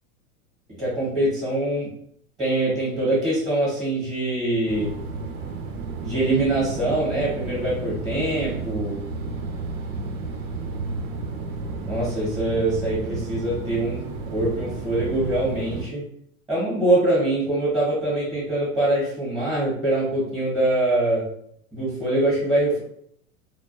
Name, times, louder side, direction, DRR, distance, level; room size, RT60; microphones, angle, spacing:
voice 1, 0.8-1.9 2.4-4.9 6.0-9.0 11.8-16.0 16.5-21.3 21.7-22.8, right 1 dB, 10° right, -8 dB, 0.9 m, -23 dB
sound 1, 4.7-15.8, right 4 dB, 75° right, 0.7 m, -32 dB
2.3 x 2.3 x 2.4 m, 0.68 s
supercardioid pair, 140°, 44 cm